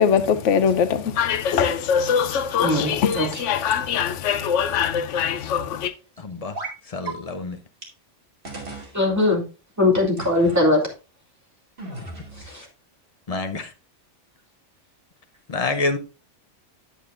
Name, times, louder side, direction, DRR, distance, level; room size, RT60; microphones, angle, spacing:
voice 1, 0.0-5.9, left 7 dB, 75° left, 1.0 m, -22 dB
voice 2, 2.6-3.4 8.9-9.4 9.8-10.8 12.5-12.6, left 2 dB, 15° right, 2.5 m, -20 dB
voice 3, 6.2-6.6 6.9-7.6 13.3-13.7 15.5-16.0, left 3 dB, 35° left, 0.8 m, -27 dB
sound 1, 6.6-6.8 7.1-7.2 7.8-7.9 8.5-8.9 10.2-10.7 11.8-12.5, right 3 dB, 45° right, 2.3 m, -35 dB
9.1 x 8.3 x 2.5 m
omnidirectional pair, 1.3 m